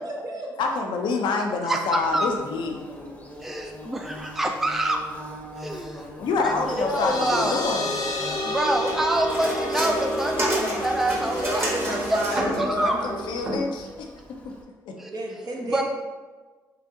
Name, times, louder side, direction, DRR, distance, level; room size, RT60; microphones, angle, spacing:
voice 1, 0.0-0.5 11.3-13.3 15.0-15.8, right 1 dB, 50° right, -1 dB, 0.9 m, -31 dB
voice 2, 0.6-2.7 6.2-7.9 12.5-14.1 14.4-14.5 14.9-15.0, left 4 dB, 75° left, 2 dB, 0.5 m, -27 dB
voice 3, 1.6-2.3 3.4-5.0 5.6-6.0 6.4-7.6 8.4-11.7 12.1-13.0 15.0-15.1 15.6-15.8, right 1 dB, 5° right, 3 dB, 0.3 m, -26 dB
Bird / Buzz, 2.0-14.6, equal, 15° left, 0.8 m, -43 dB
sound 1, 6.4-13.5, equal, 50° left, 0.8 m, -31 dB
sound 2, 8.9-12.7 13.5-13.6, equal, 30° right, 1.3 m, -30 dB
3.8 x 2.4 x 3.6 m, 1.3 s
supercardioid pair, 60°, 8 cm